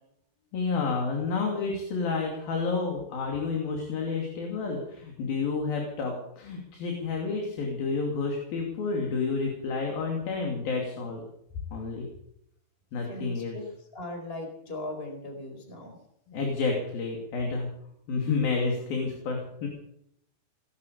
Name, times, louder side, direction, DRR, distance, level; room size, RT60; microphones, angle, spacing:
voice 1, 0.5-11.2 11.7-12.1 12.9-13.6 16.3-17.7 18.1-19.7, left 4 dB, 75° left, 1 dB, 4.5 m, -30 dB
voice 2, 13.1-13.6 13.9-16.0, left 1 dB, 15° left, 3 dB, 4.2 m, -38 dB
19.5 x 10.5 x 6.9 m, 0.73 s
omnidirectional pair, 4.3 m